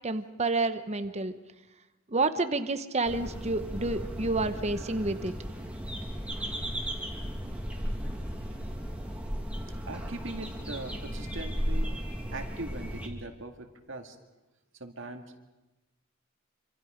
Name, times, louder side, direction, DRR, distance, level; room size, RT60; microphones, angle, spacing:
voice 1, 0.0-1.3 2.1-5.3, right 3 dB, 30° right, 10 dB, 1.0 m, -29 dB
sound 1, 3.0-13.1, equal, 5° right, 2.6 m, -35 dB
voice 2, 9.9-12.0 12.3-14.2 14.8-15.2, right 2 dB, 65° right, 5 dB, 2.2 m, -40 dB
26.5 x 26.5 x 5.1 m, 1.0 s
head